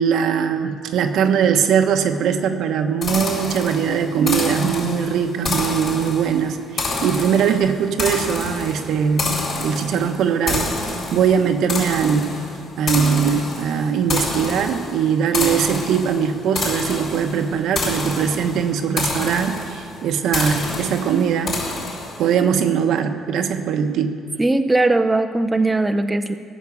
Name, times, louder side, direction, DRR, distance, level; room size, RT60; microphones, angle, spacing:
voice 1, 0.0-12.4 12.8-21.6 22.2-24.2, right 7 dB, 75° right, 6 dB, 1.0 m, -21 dB
sound 1, 3.0-22.4, left 2 dB, 50° left, 4.2 m, -28 dB
voice 2, 24.4-26.4, right 2 dB, 10° right, 7 dB, 0.6 m, -19 dB
17.0 x 6.6 x 8.3 m, 2.2 s
cardioid pair, 105°, 0 cm